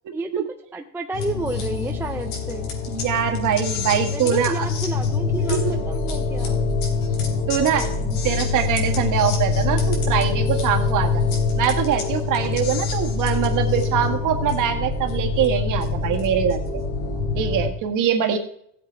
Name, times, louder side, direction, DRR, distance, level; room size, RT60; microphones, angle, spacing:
voice 1, 0.7-2.7 4.1-6.6, right 2 dB, 5° right, 4 dB, 0.4 m, -30 dB
sound 1, 1.1-17.7, left 4 dB, 85° left, 3.7 m, -24 dB
voice 2, 2.9-4.6 5.5-5.7 7.5-11.2 11.5-16.6 17.3-18.4, right 8 dB, 45° right, 5 dB, 1.6 m, -23 dB
16.5 x 7.7 x 4.5 m, 0.70 s
cardioid pair, 160°, 43 cm